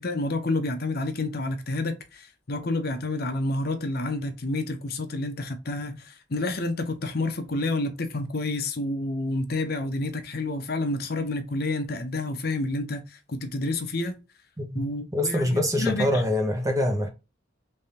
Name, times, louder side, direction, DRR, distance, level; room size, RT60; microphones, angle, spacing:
voice 1, 0.0-14.2 14.7-16.2, left 2 dB, 55° left, 0.7 m, -29 dB
voice 2, 15.1-17.1, left 1 dB, 15° right, 0.8 m, -24 dB
3.4 x 3.4 x 2.7 m
head